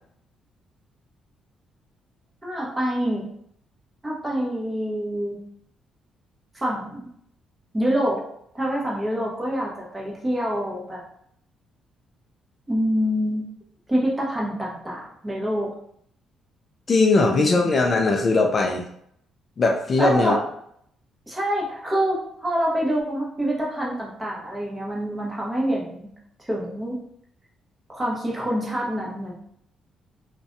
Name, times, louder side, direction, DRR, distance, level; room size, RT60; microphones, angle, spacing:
voice 1, 2.4-3.3 4.0-5.4 6.5-7.1 7.7-8.2 8.5-11.0 12.7-13.5 13.9-15.7 17.2-17.6 20.0-20.4 21.3-26.1 26.4-27.0 27.9-29.3, equal, 15° right, -4 dB, 0.9 m, -26 dB
voice 2, 16.9-18.8 19.6-20.4, left 3 dB, 45° left, 2 dB, 0.3 m, -19 dB
2.5 x 2.1 x 2.5 m, 0.69 s
cardioid pair, 90°, 0 cm